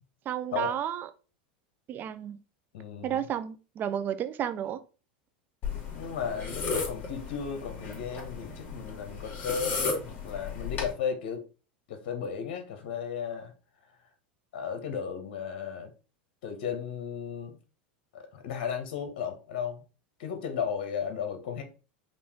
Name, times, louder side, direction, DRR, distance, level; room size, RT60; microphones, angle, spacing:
voice 1, 0.3-1.1 1.9-2.4 3.0-4.8, right 10 dB, 35° right, 0.5 m, -32 dB
voice 2, 2.7-3.2 5.9-11.5 11.9-13.5 14.5-15.9 16.4-17.6 18.1-19.8 20.2-21.6, left 7 dB, 70° left, 1.2 m, -35 dB
sound 1, 5.6-10.9, left 4 dB, 40° left, 1.9 m, -35 dB
5.3 x 2.6 x 3.6 m
hypercardioid pair, 105°, 5 cm